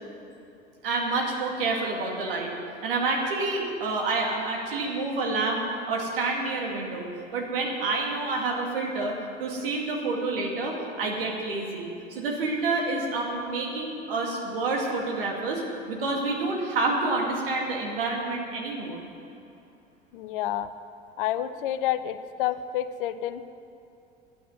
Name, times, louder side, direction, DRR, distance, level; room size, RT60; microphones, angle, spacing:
voice 1, 0.8-2.5 2.8-7.1 7.3-9.1 9.4-15.6 15.9-19.0, right 3 dB, 70° right, -1 dB, 2.4 m, -28 dB
voice 2, 20.1-20.7 21.2-23.5, left 12 dB, 60° left, 12 dB, 0.7 m, -29 dB
11.0 x 9.3 x 9.3 m, 2.7 s
figure-of-eight pair, 65°, 30 cm